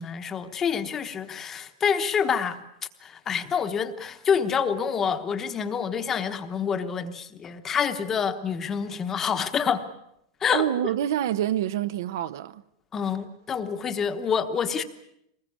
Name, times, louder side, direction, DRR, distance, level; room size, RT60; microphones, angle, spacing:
voice 1, 0.0-2.6 3.0-9.8 10.4-10.6 12.9-14.8, left 7 dB, 15° left, 1.1 m, -27 dB
voice 2, 10.5-12.6, right 11 dB, 60° right, 0.9 m, -26 dB
24.0 x 20.5 x 8.6 m
supercardioid pair, 180°, 2 cm